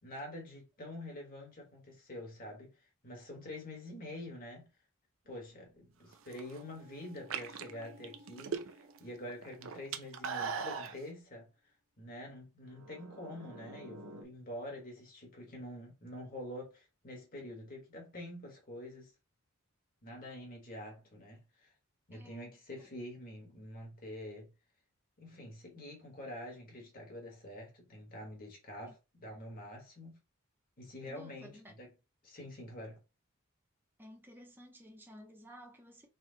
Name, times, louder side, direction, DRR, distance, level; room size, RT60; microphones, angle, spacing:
voice 1, 0.0-4.7 5.2-11.5 12.0-19.1 20.0-21.7 22.1-24.5 25.2-30.2 30.8-31.9 32.2-33.0, left 1 dB, 40° left, 1.6 m, -46 dB
sound 1, 5.3-10.1 12.6-14.2, right 1 dB, 80° right, 0.9 m, -55 dB
sound 2, 6.1-6.6 7.2-9.0 9.3-11.0, right 6 dB, 60° right, 0.5 m, -38 dB
voice 2, 22.1-22.5 22.8-22.9 28.9-29.0 31.1-31.8 34.0-36.1, equal, 10° right, 0.9 m, -54 dB
4.2 x 2.4 x 4.0 m
head